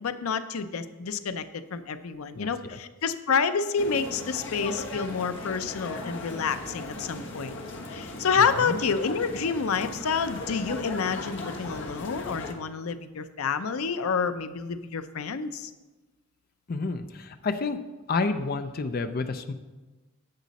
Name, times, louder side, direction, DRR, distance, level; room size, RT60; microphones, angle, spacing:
voice 1, 0.0-7.6 7.9-15.7, left 5 dB, 90° left, 11 dB, 0.6 m, -28 dB
sound 1, 3.8-12.5, left 2 dB, 60° left, 1.3 m, -38 dB
voice 2, 8.4-8.8 16.7-17.8 18.1-19.5, left 3 dB, 45° left, 9 dB, 0.5 m, -29 dB
10.5 x 8.2 x 4.1 m, 1.2 s
head